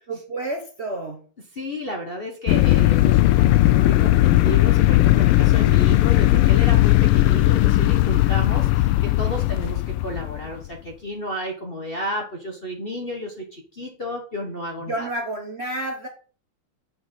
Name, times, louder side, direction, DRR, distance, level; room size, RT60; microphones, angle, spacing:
voice 1, 0.1-1.2 9.5-9.8 14.9-16.1, right 2 dB, 40° right, 2 dB, 1.0 m, -30 dB
voice 2, 1.5-15.1, equal, 35° left, 1 dB, 1.1 m, -32 dB
sound 1, 2.5-10.7, left 16 dB, 80° left, 1.4 m, -17 dB
7.4 x 4.8 x 5.2 m, 0.39 s
omnidirectional pair, 2.4 m